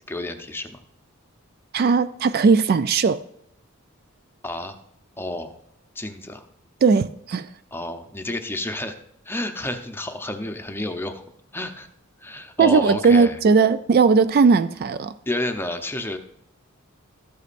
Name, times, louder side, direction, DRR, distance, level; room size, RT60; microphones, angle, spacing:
voice 1, 0.1-0.8 4.4-4.8 5.2-5.5 5.9-6.4 7.7-9.0 9.3-11.2 11.5-11.9 12.2-13.4 15.3-16.2, left 1 dB, 10° left, 0.7 m, -30 dB
voice 2, 1.7-3.2 6.8-7.5 12.6-15.1, right 5 dB, 45° right, 0.3 m, -18 dB
13.5 x 8.4 x 2.5 m
head